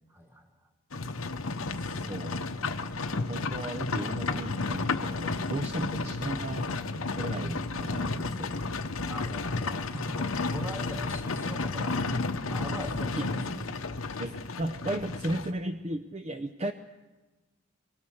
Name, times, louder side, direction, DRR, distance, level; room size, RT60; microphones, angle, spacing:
voice 1, 0.1-0.6 9.1-12.1 12.4-13.7, left 1 dB, 10° right, 3 dB, 1.7 m, -41 dB
Livestock farm animals working animals, 0.9-15.5, left 3 dB, 80° left, 1.0 m, -32 dB
voice 2, 1.7-2.5 3.1-6.7 7.2-8.8 13.0-13.3 14.2-16.7, right 1 dB, 30° right, 8 dB, 0.6 m, -36 dB
23.5 x 17.0 x 6.5 m, 1.2 s
head